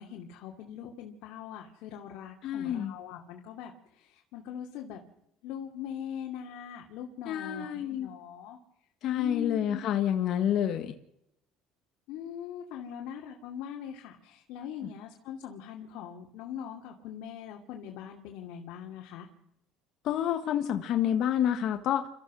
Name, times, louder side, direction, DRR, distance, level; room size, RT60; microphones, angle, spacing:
voice 1, 0.0-5.0 5.4-8.6 9.1-10.0 12.1-19.3, left 9 dB, 75° left, 0 dB, 2.7 m, -41 dB
voice 2, 2.4-2.9 7.3-8.1 9.0-10.9 20.0-22.1, left 10 dB, 55° left, 6 dB, 1.6 m, -28 dB
29.5 x 14.5 x 6.3 m, 0.80 s
cardioid pair, 135°, 0 cm